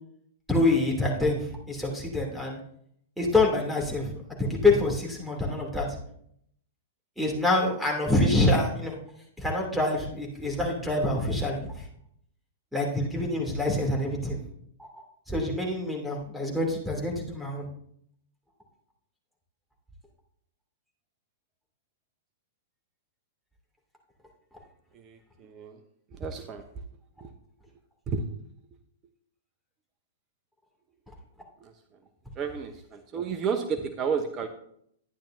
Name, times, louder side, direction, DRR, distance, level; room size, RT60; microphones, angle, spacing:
voice 1, 0.5-2.6 3.2-4.1 4.4-5.9 7.2-9.0 9.4-11.7 12.7-14.4 14.8-15.0 15.3-17.7, left 2 dB, ahead, 0 dB, 3.0 m, -26 dB
voice 2, 25.0-25.7 26.2-26.6 27.2-27.3 28.1-28.2 31.6-31.7 32.4-34.5, right 6 dB, 30° right, 6 dB, 0.9 m, -31 dB
12.5 x 10.5 x 2.8 m, 0.68 s
figure-of-eight pair, 105°, 0 cm